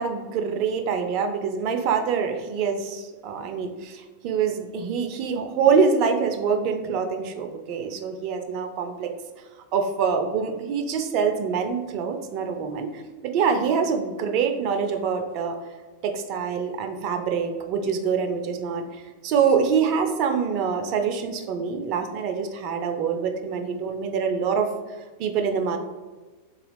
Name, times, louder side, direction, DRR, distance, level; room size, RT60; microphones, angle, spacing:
voice 1, 0.0-9.1 9.7-15.6 16.0-24.7 25.2-25.8, right 6 dB, 40° right, 6 dB, 0.4 m, -25 dB
3.8 x 2.3 x 3.3 m, 1.3 s
figure-of-eight pair, 90°, 0 cm